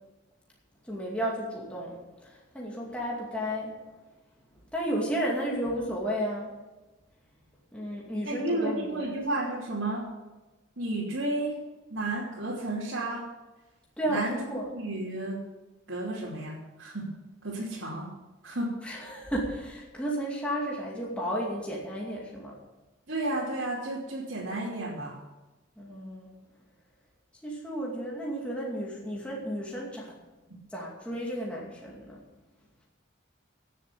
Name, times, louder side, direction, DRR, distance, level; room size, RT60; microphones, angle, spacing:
voice 1, 0.9-3.7 4.7-6.5 7.7-9.1 14.0-14.7 18.8-22.6 25.8-26.3 27.4-30.1 30.7-32.2, equal, 5° left, -4 dB, 2.4 m, -33 dB
voice 2, 8.2-10.0 10.8-11.6 11.9-13.3 14.1-14.4 14.7-15.4 15.9-17.1 17.4-18.1 18.4-18.7 23.1-25.2, right 2 dB, 75° right, -7 dB, 3.0 m, -32 dB
16.0 x 7.6 x 6.9 m, 1.1 s
head